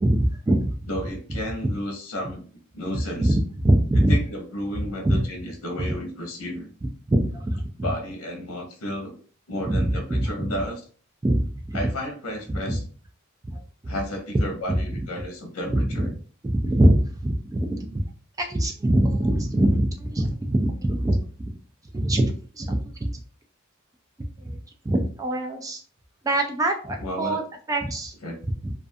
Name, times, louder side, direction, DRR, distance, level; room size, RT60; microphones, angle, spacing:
voice 1, 0.0-0.7 3.2-4.2 5.0-5.2 6.8-7.9 9.7-9.9 10.4-10.5 11.2-11.4 12.7-12.8 13.8-13.9 14.7-14.8 15.8-16.1 16.4-18.0 18.4-21.2 21.9-23.1 24.4-24.6 24.9-25.8 26.2-27.4 27.7-28.1 28.6-28.7, right 1 dB, 15° right, 3 dB, 0.3 m, -23 dB
voice 2, 0.9-2.4 2.7-3.4 4.1-6.7 7.8-9.2 9.5-10.8 11.7-12.8 13.9-16.1 27.0-27.4 28.2-28.6, equal, 85° left, 3 dB, 0.8 m, -32 dB
2.4 x 2.4 x 2.5 m, 0.42 s
head